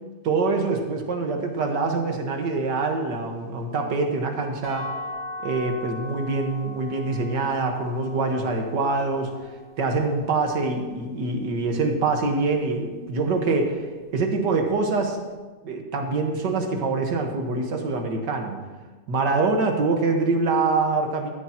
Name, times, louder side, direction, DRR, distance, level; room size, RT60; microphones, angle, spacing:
voice 1, 0.2-4.9 5.4-9.3 9.8-13.8 14.1-15.2 15.6-18.6 19.1-21.3, right 3 dB, 75° right, 3 dB, 2.0 m, -25 dB
sound 1, 4.6-10.4, left 1 dB, 10° right, 3.8 m, -39 dB
15.5 x 13.0 x 2.9 m, 1.3 s
omnidirectional pair, 1.9 m